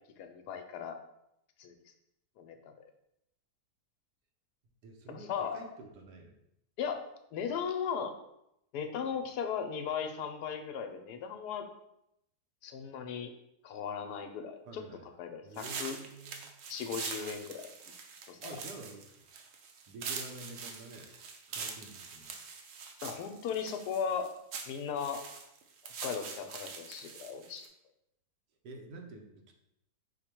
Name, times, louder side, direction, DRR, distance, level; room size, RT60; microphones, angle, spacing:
voice 1, 0.2-1.0 1.6-1.7 2.4-2.7 5.1-5.6 6.8-7.0 7.3-8.2 8.7-11.7 12.6-13.3 13.6-14.8 15.2-16.0 16.7-17.7 18.3-18.4 23.0-24.3 24.7-25.2 25.8-27.7, left 7 dB, 75° left, 6 dB, 1.1 m, -37 dB
voice 2, 4.8-6.4 9.0-9.2 14.6-15.1 15.4-16.6 18.4-19.2 19.9-21.1 21.5-22.3 28.6-29.5, right 2 dB, 85° right, 3 dB, 1.3 m, -49 dB
sound 1, 15.5-27.7, right 5 dB, 65° right, 0.9 m, -44 dB
5.1 x 2.2 x 4.3 m, 0.82 s
omnidirectional pair, 1.8 m